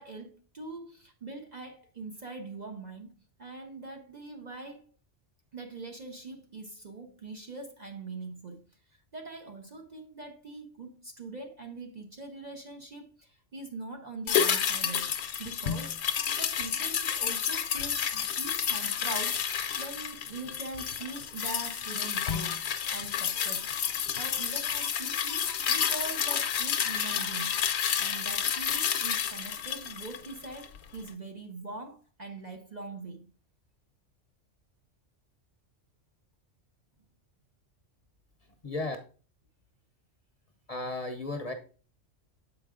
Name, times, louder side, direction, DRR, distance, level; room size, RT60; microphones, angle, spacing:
voice 1, 0.0-4.9 5.5-23.7 24.2-27.6 28.0-33.3, right 3 dB, 45° right, 0.7 m, -43 dB
sound 1, 14.3-30.8 31.1-31.2, left 8 dB, 65° left, 0.9 m, -30 dB
voice 2, 38.6-39.0 40.7-41.5, left 2 dB, 35° left, 0.7 m, -34 dB
7.4 x 4.8 x 3.6 m
omnidirectional pair, 1.3 m